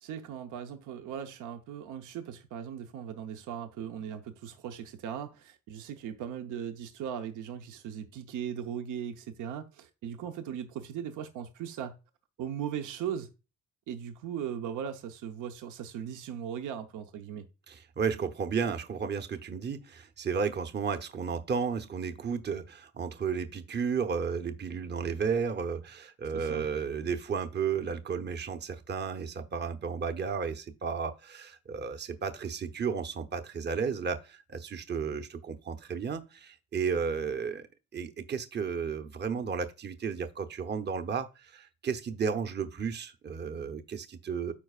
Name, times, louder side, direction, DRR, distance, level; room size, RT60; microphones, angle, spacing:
voice 1, 0.0-12.0 12.4-13.3 13.9-17.5 26.3-26.7, right 8 dB, 80° right, 0.8 m, -38 dB
voice 2, 17.7-37.7 37.9-44.5, right 6 dB, 35° right, 0.8 m, -33 dB
13.0 x 4.5 x 2.4 m
cardioid pair, 90°, 30 cm